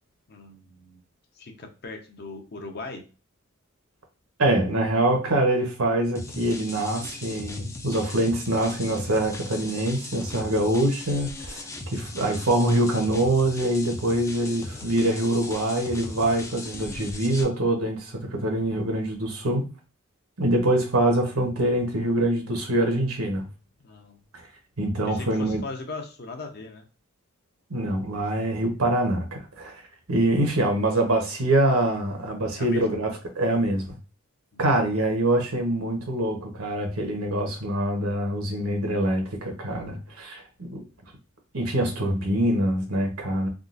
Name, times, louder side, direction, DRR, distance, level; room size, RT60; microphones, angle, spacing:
voice 1, 0.3-1.0 1.4-3.0 23.8-24.2 25.0-26.9 32.5-33.0 34.5-34.8, left 3 dB, 45° left, 4 dB, 0.7 m, -39 dB
voice 2, 4.4-19.7 20.4-23.5 24.8-25.6 27.7-29.7 30.1-33.9 34.6-40.8 41.5-43.5, right 1 dB, 75° right, 2 dB, 1.0 m, -24 dB
sound 1, 6.2-17.4, left 2 dB, 15° left, 0.4 m, -38 dB
3.6 x 2.3 x 2.5 m, 0.33 s
head